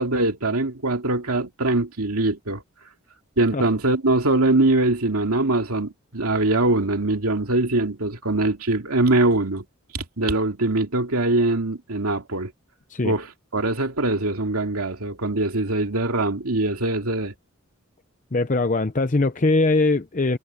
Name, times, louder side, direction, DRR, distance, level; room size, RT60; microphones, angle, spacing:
voice 1, 0.0-2.6 3.4-9.6 9.9-12.5 13.0-13.3 13.5-17.3, right 2 dB, 90° right, 2.5 m, -22 dB
voice 2, 18.3-20.4, left 2 dB, 35° left, 0.7 m, -21 dB
head